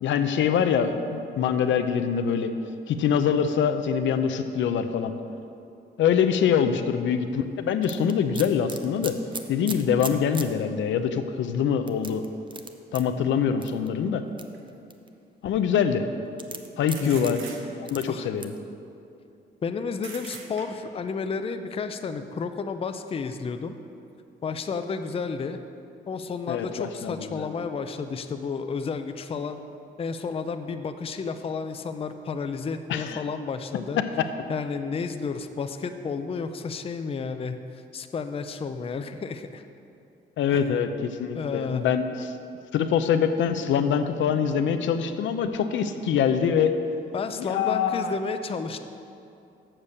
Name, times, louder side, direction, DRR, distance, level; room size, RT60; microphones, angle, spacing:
voice 1, 0.0-2.5 2.9-5.1 6.0-9.2 9.5-12.2 12.9-14.2 15.4-16.0 16.8-17.4 17.8-18.5 26.5-27.5 32.9-33.2 40.4-42.3 42.7-46.7 47.4-48.1, left 7 dB, 70° left, 8 dB, 0.6 m, -24 dB
sound 1, 7.8-10.5 11.0-11.1 11.9-13.0 13.6-13.9 14.4-15.1 16.4-17.3 17.9-18.0 18.4-18.6, right 4 dB, 25° right, 0.6 m, -37 dB
sound 2, 14.5-14.6 16.9-18.0 20.0-21.0, right 5 dB, 90° right, 1.0 m, -42 dB
voice 2, 19.6-23.8 24.4-25.6 26.1-29.6 30.0-34.0 34.5-39.6 40.5-40.8 41.3-41.9 47.1-48.8, left 5 dB, 30° left, 8 dB, 0.5 m, -32 dB
7.3 x 6.7 x 6.6 m, 2.6 s
cardioid pair, 90°, 20 cm